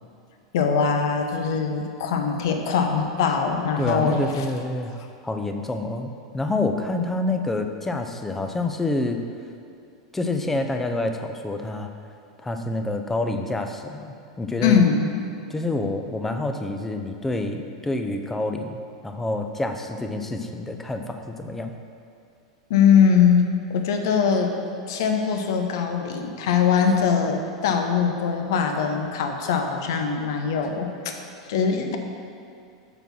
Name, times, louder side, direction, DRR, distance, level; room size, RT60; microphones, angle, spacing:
voice 1, 0.5-4.4 14.6-15.1 22.7-24.6 24.9-31.2 31.5-32.0, left 6 dB, 60° left, 4 dB, 0.9 m, -22 dB
voice 2, 3.8-9.2 10.1-11.9 12.4-14.8 15.5-21.7, left 2 dB, 10° left, 5 dB, 0.7 m, -27 dB
6.9 x 6.1 x 5.8 m, 2.5 s
figure-of-eight pair, 90°, 3 cm